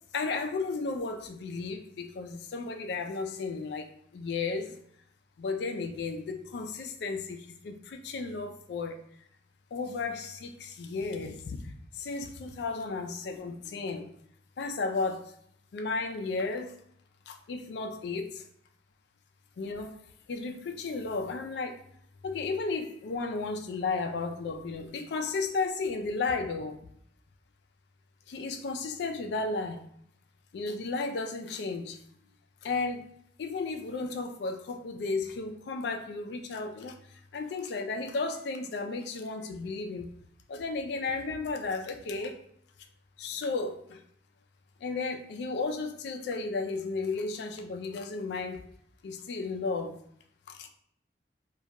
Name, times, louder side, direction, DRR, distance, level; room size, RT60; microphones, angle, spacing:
voice 1, 0.1-4.7 5.4-9.0 9.7-14.1 14.6-15.3 15.7-16.8 17.3-18.4 19.6-20.0 20.3-21.8 22.2-26.8 28.3-29.8 30.5-32.0 32.6-33.1 33.4-37.0 37.3-40.1 40.5-42.4 43.2-44.0 44.8-48.7 49.0-50.0 50.5-50.7, left 3 dB, 60° left, 5 dB, 0.3 m, -34 dB
2.3 x 2.1 x 2.8 m, 0.66 s
head